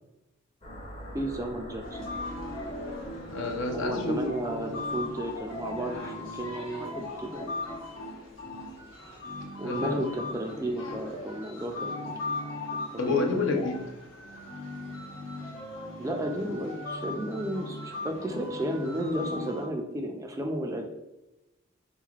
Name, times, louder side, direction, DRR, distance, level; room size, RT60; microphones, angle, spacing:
sound 1, 0.6-10.2, equal, 30° left, 0.7 m, -47 dB
voice 1, 1.1-2.2 3.7-7.5 9.6-12.2 12.7-13.2 16.0-20.8, right 1 dB, 15° right, 3 dB, 0.3 m, -33 dB
sound 2, 1.8-19.7, left 2 dB, 90° left, 1.1 m, -38 dB
voice 2, 3.3-4.3 9.4-10.3 13.0-13.9, left 3 dB, 70° left, 2 dB, 0.6 m, -29 dB
3.8 x 3.1 x 2.4 m, 0.95 s
head